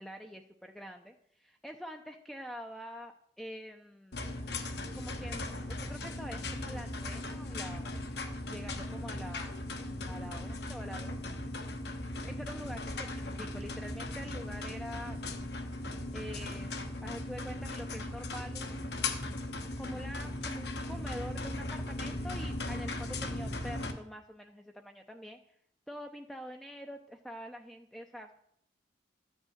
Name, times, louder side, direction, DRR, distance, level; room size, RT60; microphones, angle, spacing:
voice 1, 0.0-4.3 4.9-7.9 8.5-9.6 10.0-11.3 12.3-15.2 16.1-16.7 17.0-19.1 19.8-25.4 25.9-28.3, equal, ahead, 3 dB, 0.6 m, -45 dB
sound 1, 4.1-23.9, left 2 dB, 55° left, 1.2 m, -38 dB
13.0 x 6.3 x 9.1 m, 0.69 s
head